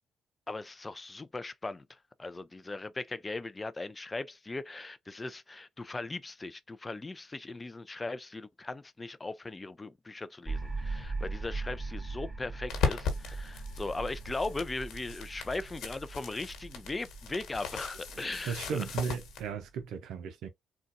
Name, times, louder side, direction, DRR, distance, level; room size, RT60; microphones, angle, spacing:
voice 1, 0.5-18.9, left 3 dB, 20° left, 0.4 m, -39 dB
sound 1, 10.4-19.8, right 3 dB, 10° right, 1.5 m, -40 dB
sound 2, 12.7-19.4, left 5 dB, 80° left, 1.3 m, -38 dB
voice 2, 18.1-20.5, right 6 dB, 85° right, 0.5 m, -36 dB
3.9 x 2.3 x 2.5 m
cardioid pair, 90°, 0 cm